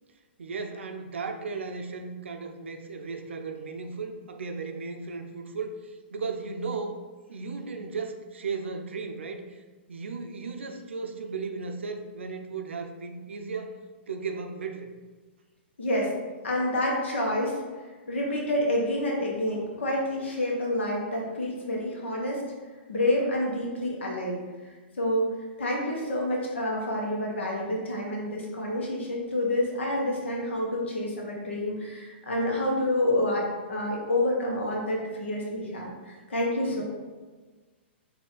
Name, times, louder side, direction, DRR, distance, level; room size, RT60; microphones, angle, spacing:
voice 1, 0.4-7.0 7.3-9.6 9.9-13.8 14.1-14.9 36.7-36.8, right 4 dB, 90° right, 5 dB, 0.5 m, -35 dB
voice 2, 15.8-16.1 16.4-17.6 18.1-22.4 22.9-24.4 25.0-25.3 25.6-36.8, left 1 dB, 85° left, -2 dB, 1.2 m, -28 dB
4.2 x 2.8 x 3.9 m, 1.3 s
hypercardioid pair, 130°, 6 cm